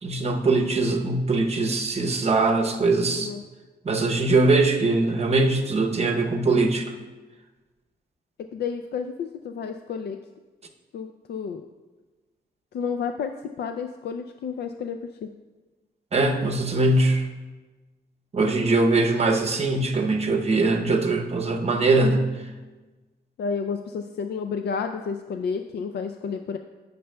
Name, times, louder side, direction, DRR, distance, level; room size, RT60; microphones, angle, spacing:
voice 1, 0.0-3.3 3.8-6.9 16.1-17.3 18.3-22.2, right 3 dB, 40° right, 4 dB, 0.7 m, -22 dB
voice 2, 8.5-10.2 10.9-11.7 12.7-15.3 23.4-26.6, left 6 dB, 80° left, 7 dB, 0.4 m, -31 dB
15.0 x 6.6 x 2.2 m, 1.2 s
wide cardioid pair, 150°, 17 cm